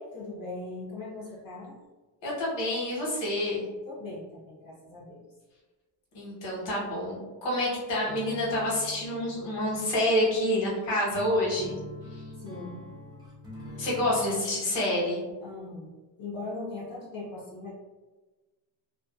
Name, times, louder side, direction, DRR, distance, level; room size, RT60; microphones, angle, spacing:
voice 1, 0.1-1.8 3.8-5.2 12.4-12.9 15.4-15.9 16.2-17.7, left 2 dB, 50° left, -5 dB, 0.6 m, -39 dB
voice 2, 2.2-3.6 6.1-11.8 13.8-15.2, left 1 dB, 70° left, -5 dB, 1.2 m, -28 dB
sound 1, 8.1-14.2, left 2 dB, 10° right, 0.6 m, -45 dB
2.6 x 2.1 x 2.3 m, 1.2 s
cardioid pair, 150°, 46 cm